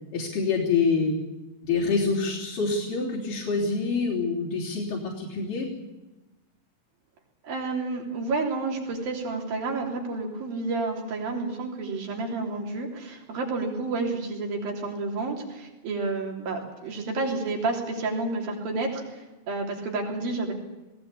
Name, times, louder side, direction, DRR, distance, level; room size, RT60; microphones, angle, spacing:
voice 1, 0.1-1.2 1.6-5.7, left 4 dB, 65° left, -1 dB, 5.0 m, -26 dB
voice 2, 7.4-20.5, right 3 dB, 80° right, 0 dB, 5.1 m, -30 dB
19.0 x 18.0 x 8.6 m, 1.1 s
omnidirectional pair, 4.1 m